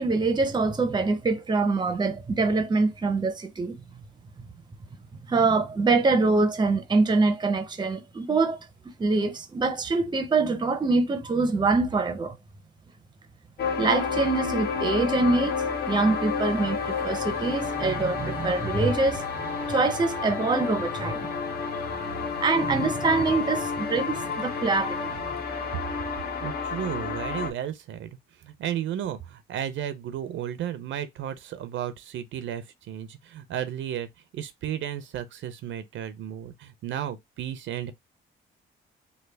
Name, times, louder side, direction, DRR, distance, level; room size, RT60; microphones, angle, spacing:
voice 1, 0.0-3.8 5.3-8.6 9.0-12.4 13.8-21.3 22.4-25.2, right 3 dB, 20° right, 0.6 m, -24 dB
sound 1, 13.6-27.5, left 5 dB, 50° left, 0.9 m, -30 dB
voice 2, 26.4-34.1 34.3-37.9, right 10 dB, 75° right, 0.6 m, -33 dB
3.3 x 2.2 x 3.3 m
cardioid pair, 90°, 20 cm